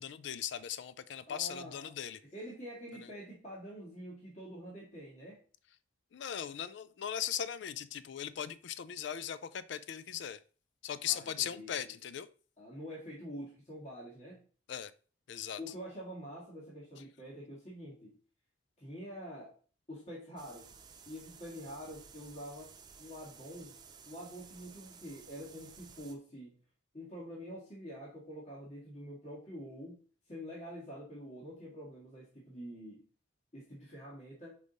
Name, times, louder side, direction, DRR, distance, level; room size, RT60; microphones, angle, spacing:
voice 1, 0.0-2.2 6.1-10.4 10.8-12.3 14.7-14.9 15.3-15.6, left 9 dB, 65° left, 0.4 m, -38 dB
voice 2, 1.3-1.9 2.2-5.4 11.0-11.9 12.6-14.4 15.6-18.1 18.8-19.5 19.9-20.7 21.1-22.7 23.0-23.7 24.1-26.5 26.9-30.0 30.3-33.0 33.5-34.5, equal, 35° left, 1.7 m, -46 dB
sound 1, 20.4-26.1, right 6 dB, 20° right, 0.5 m, -55 dB
5.2 x 4.9 x 4.0 m
head